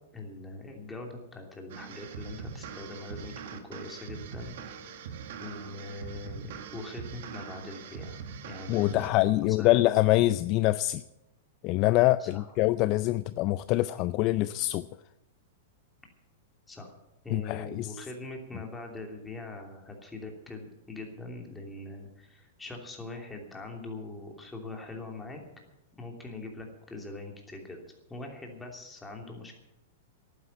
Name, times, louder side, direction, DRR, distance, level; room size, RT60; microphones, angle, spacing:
voice 1, 0.1-4.5 4.8-8.2 8.4-9.7 12.2-12.5 16.7-16.9 17.2-25.4 26.0-27.8 28.1-29.5, left 3 dB, 10° left, 1 dB, 2.9 m, -42 dB
sound 1, 1.7-9.1, right 7 dB, 65° right, 1.7 m, -42 dB
voice 2, 8.7-11.0 11.6-14.9 17.3-17.9, left 17 dB, 40° left, 15 dB, 0.4 m, -25 dB
11.5 x 9.6 x 9.5 m, 0.89 s
hypercardioid pair, 145°, 0 cm